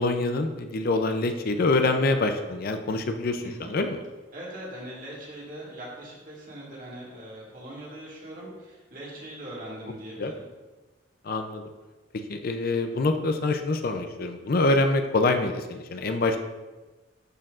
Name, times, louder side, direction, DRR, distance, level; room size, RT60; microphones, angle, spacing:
voice 1, 0.0-4.0 10.2-10.3 11.2-11.6 12.3-16.4, left 2 dB, 55° left, 6 dB, 0.5 m, -25 dB
voice 2, 3.4-3.8 4.3-10.4, right 1 dB, 45° right, -4 dB, 2.0 m, -41 dB
11.5 x 4.5 x 2.5 m, 1.2 s
head